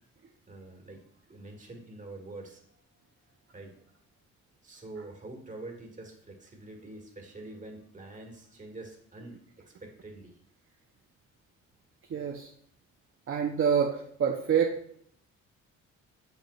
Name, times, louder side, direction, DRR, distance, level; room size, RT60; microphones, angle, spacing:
voice 1, 0.5-4.1 4.6-10.4, right 2 dB, 25° right, 1 dB, 1.9 m, -46 dB
voice 2, 12.1-12.5 13.3-14.8, right 7 dB, 45° right, 1 dB, 0.8 m, -27 dB
7.9 x 7.2 x 2.4 m, 0.66 s
cardioid pair, 90°, 30 cm